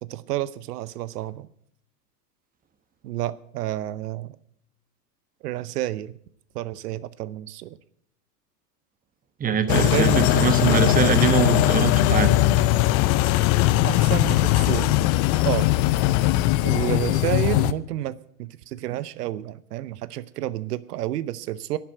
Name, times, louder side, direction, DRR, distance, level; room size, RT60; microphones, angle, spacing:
voice 1, 0.0-1.5 3.0-4.4 5.4-6.1 6.5-7.8 9.7-10.9 13.8-15.0 15.4-15.7 16.6-21.8, right 14 dB, 75° right, 17 dB, 0.8 m, -30 dB
voice 2, 9.4-12.4, right 6 dB, 15° right, 10 dB, 1.1 m, -23 dB
sound 1, 9.7-17.7, left 15 dB, 35° left, 0.6 m, -20 dB
11.5 x 7.6 x 9.5 m, 0.67 s
hypercardioid pair, 120°, 47 cm